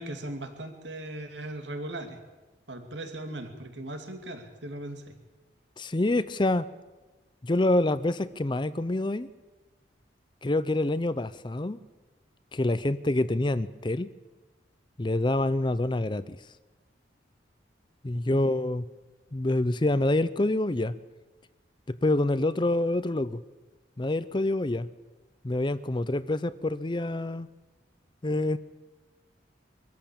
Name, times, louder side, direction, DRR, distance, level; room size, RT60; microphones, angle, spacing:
voice 1, 0.0-2.2 2.7-5.2 18.1-18.4, right 1 dB, 80° right, 6 dB, 2.7 m, -38 dB
voice 2, 5.8-6.7 7.4-9.3 10.4-11.8 12.5-14.1 15.0-16.4 18.0-18.8 19.3-20.9 21.9-23.4 24.0-24.9 25.4-27.5 28.2-28.6, left 2 dB, 25° left, 15 dB, 0.6 m, -26 dB
24.0 x 14.5 x 8.7 m, 1.2 s
head